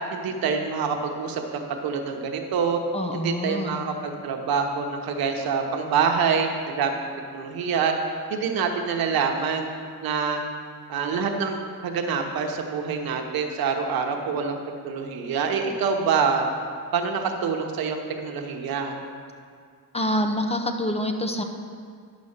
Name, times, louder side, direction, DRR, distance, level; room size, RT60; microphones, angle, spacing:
voice 1, 0.1-2.8 3.1-7.0 7.3-7.9 8.3-9.7 10.0-10.4 10.9-14.6 14.8-16.5 16.9-19.0, right 6 dB, 85° right, 3 dB, 1.0 m, -26 dB
voice 2, 2.9-3.9 19.9-21.4, left 1 dB, 20° left, 5 dB, 0.6 m, -26 dB
10.5 x 4.2 x 6.5 m, 2.1 s
cardioid pair, 105°, 35 cm